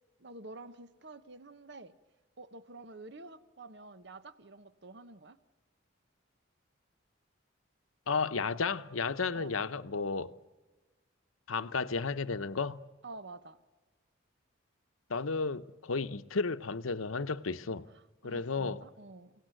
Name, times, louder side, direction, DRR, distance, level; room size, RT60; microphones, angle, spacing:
voice 1, 0.2-1.9 2.4-5.4 9.3-9.5 13.0-13.6 17.9-19.3, right 2 dB, 55° right, 1.0 m, -49 dB
voice 2, 8.1-10.3 11.5-12.8 15.1-17.9 18.2-18.8, left 4 dB, 85° left, 0.9 m, -33 dB
29.5 x 17.5 x 9.1 m
head